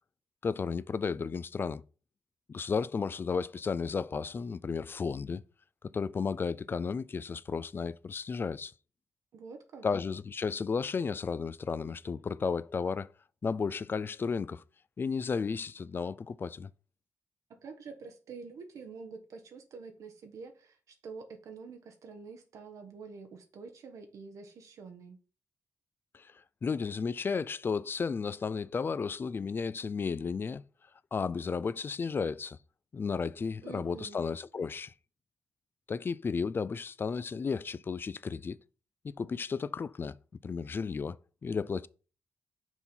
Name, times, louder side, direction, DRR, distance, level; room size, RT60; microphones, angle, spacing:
voice 1, 0.4-1.8 2.5-5.4 5.8-8.7 9.8-13.1 13.4-14.6 15.0-16.7 26.1-26.3 26.6-30.6 31.1-32.6 32.9-34.9 35.9-38.6 39.0-40.2 40.4-41.2 41.4-41.9, left 5 dB, 40° left, 0.3 m, -33 dB
voice 2, 9.3-9.9 17.5-20.8 21.0-25.2 33.6-34.2, right 5 dB, 80° right, 0.9 m, -47 dB
6.0 x 3.8 x 4.4 m
cardioid pair, 65°, 5 cm